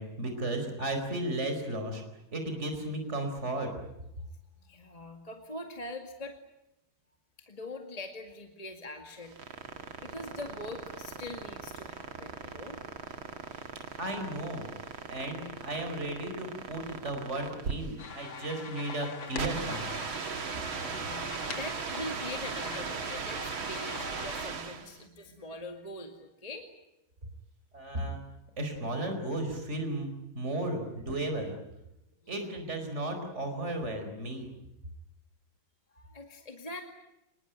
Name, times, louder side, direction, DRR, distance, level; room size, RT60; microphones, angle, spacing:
voice 1, 0.0-2.0 2.3-3.7 13.6-13.7 14.0-14.7 15.1-19.8 27.7-28.2 28.6-30.1 30.3-31.6 32.3-34.5, right 1 dB, 30° right, 6 dB, 4.9 m, -34 dB
voice 2, 4.6-6.4 7.5-9.4 10.0-12.8 20.7-26.7 32.2-32.5 35.9-36.8, left 2 dB, 20° left, 4 dB, 2.1 m, -43 dB
sound 1, 9.1-25.0, right 5 dB, 75° right, 2.8 m, -38 dB
sound 2, 18.0-24.4, left 5 dB, 65° left, 2.9 m, -43 dB
25.5 x 21.5 x 9.1 m, 0.89 s
omnidirectional pair, 2.3 m